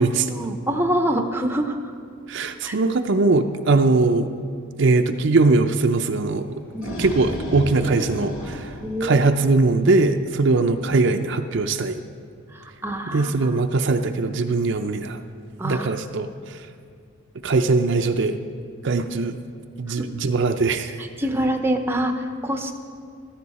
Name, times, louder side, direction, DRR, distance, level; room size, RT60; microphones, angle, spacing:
voice 1, 0.0-1.9 2.6-2.8 6.7-7.0 8.8-9.3 10.6-10.7 12.5-13.6 15.6-15.9 19.9-20.0 21.2-22.7, right 1 dB, 10° right, 5 dB, 0.6 m, -26 dB
voice 2, 2.3-4.3 4.8-6.6 7.0-12.0 13.1-15.2 15.6-16.6 17.4-18.4 18.8-19.4 19.8-21.0, right 3 dB, 55° right, 6 dB, 0.5 m, -21 dB
sound 1, 6.5-9.7, equal, 70° left, 2.0 m, -32 dB
14.5 x 13.5 x 4.2 m, 2.2 s
head